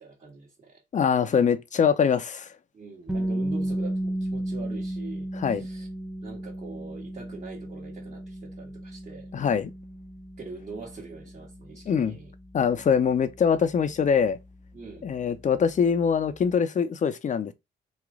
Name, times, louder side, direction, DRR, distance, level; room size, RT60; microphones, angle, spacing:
voice 1, 0.0-0.8 2.7-5.9 6.2-9.3 10.4-12.3 14.7-15.1, right 4 dB, 35° right, 1.4 m, -43 dB
voice 2, 0.9-2.5 5.3-5.7 9.3-9.7 11.9-12.2 12.5-14.4 15.0-17.5, left 7 dB, 40° left, 0.5 m, -23 dB
sound 1, 3.1-14.9, right 1 dB, 5° right, 0.7 m, -34 dB
3.1 x 2.4 x 3.6 m
cardioid pair, 90°, 20 cm